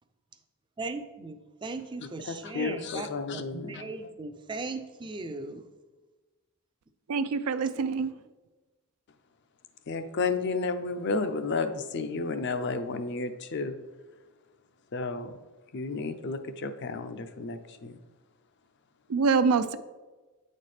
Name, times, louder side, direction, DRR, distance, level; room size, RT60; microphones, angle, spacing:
voice 1, 0.8-5.6, right 3 dB, 20° right, 0.4 m, -38 dB
voice 2, 2.0-4.1 9.9-13.8 14.9-15.4 15.7-18.0, left 4 dB, 50° left, 0.5 m, -32 dB
voice 3, 7.1-8.1 19.1-19.8, right 5 dB, 90° right, 0.4 m, -25 dB
8.8 x 4.2 x 3.3 m
head